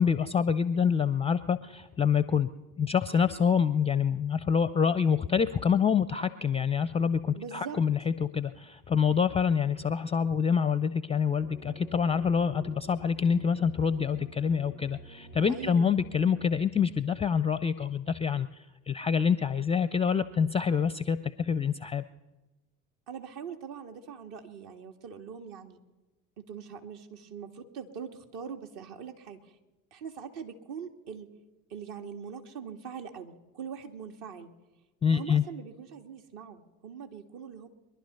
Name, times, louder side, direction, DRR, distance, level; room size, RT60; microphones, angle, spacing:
voice 1, 0.0-2.5 2.8-18.5 18.9-22.0 35.0-35.4, left 6 dB, 15° left, 14 dB, 0.4 m, -26 dB
voice 2, 7.3-7.8 15.5-16.0 23.1-25.8 26.4-29.5 29.9-31.3 31.7-34.5 35.1-37.7, right 6 dB, 55° right, 5 dB, 1.8 m, -42 dB
sound 1, 11.4-16.6, right 3 dB, 70° right, 1.8 m, -49 dB
23.0 x 11.5 x 5.4 m, 1.1 s
hypercardioid pair, 70°, 47 cm